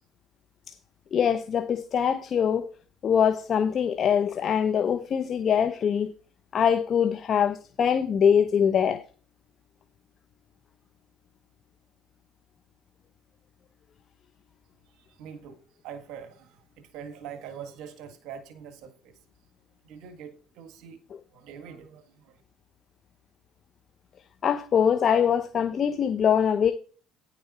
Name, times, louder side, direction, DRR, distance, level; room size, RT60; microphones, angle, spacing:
voice 1, 1.1-2.7 3.0-6.1 6.5-9.0 24.4-26.7, left 8 dB, 45° left, 1.0 m, -23 dB
voice 2, 15.0-15.6 15.8-19.2 19.8-21.0 21.3-22.4, right 7 dB, 70° right, 1.8 m, -43 dB
10.5 x 7.0 x 4.3 m
supercardioid pair, 90°, 0 cm